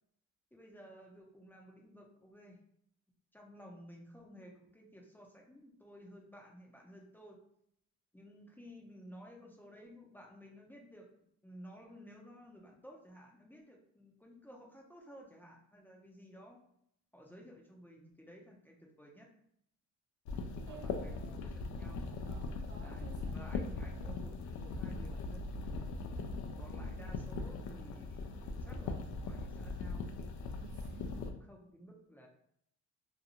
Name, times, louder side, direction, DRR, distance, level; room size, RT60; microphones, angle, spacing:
voice 1, 0.5-2.6 3.3-7.4 8.1-11.1 11.4-16.6 17.1-19.3 20.6-22.1 22.8-26.0 26.6-30.1 31.1-32.3, equal, 5° left, -1 dB, 0.6 m, -55 dB
sound 1, 20.3-31.3, left 3 dB, 70° left, 0.5 m, -40 dB
voice 2, 20.7-21.4 22.2-23.6 23.9-24.2 26.7-27.1 30.6-31.3, right 4 dB, 80° right, 1 dB, 0.7 m, -54 dB
2.6 x 2.2 x 2.9 m, 0.71 s
cardioid pair, 90°, 30 cm